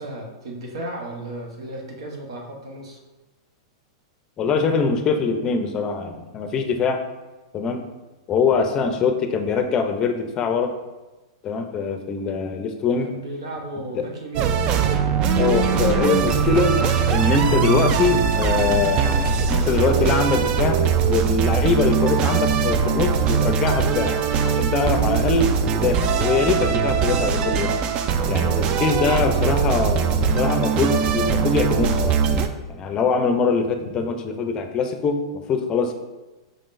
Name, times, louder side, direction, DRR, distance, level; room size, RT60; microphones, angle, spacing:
voice 1, 0.0-3.0 13.0-14.7, right 1 dB, 85° right, 1 dB, 1.0 m, -34 dB
voice 2, 4.4-7.0 7.5-7.8 8.3-10.7 11.4-13.1 14.0-14.1 15.4-16.7 17.1-24.2 24.4-27.7 28.3-32.2 32.7-35.9, left 5 dB, 25° left, 6 dB, 0.5 m, -23 dB
sound 1, 14.3-32.5, right 6 dB, 35° right, 0.3 m, -21 dB
5.3 x 3.6 x 2.5 m, 1.1 s
hypercardioid pair, 130°, 3 cm